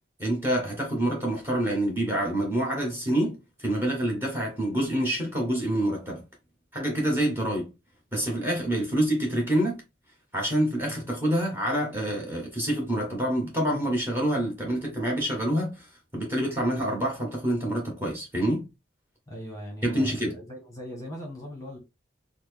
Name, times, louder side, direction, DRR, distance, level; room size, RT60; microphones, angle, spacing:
voice 1, 0.2-6.2 6.7-7.7 8.1-9.8 10.3-18.6 19.8-20.3, right 1 dB, 10° right, 1.2 m, -27 dB
voice 2, 19.3-21.8, equal, 20° left, 1.0 m, -40 dB
4.0 x 2.1 x 3.2 m
head